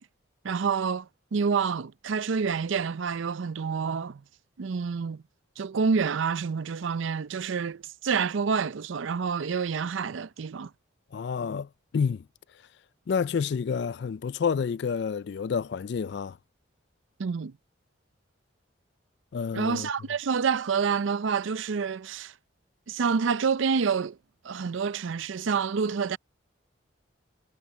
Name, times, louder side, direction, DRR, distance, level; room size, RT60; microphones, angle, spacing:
voice 1, 0.4-4.2 4.6-5.2 5.6-10.7 17.2-17.5 19.5-22.3 22.9-24.2 24.4-26.2, right 5 dB, 75° right, 0.5 m, -28 dB
voice 2, 11.1-12.2 13.1-16.4 19.3-19.9, left 6 dB, 60° left, 0.3 m, -29 dB
head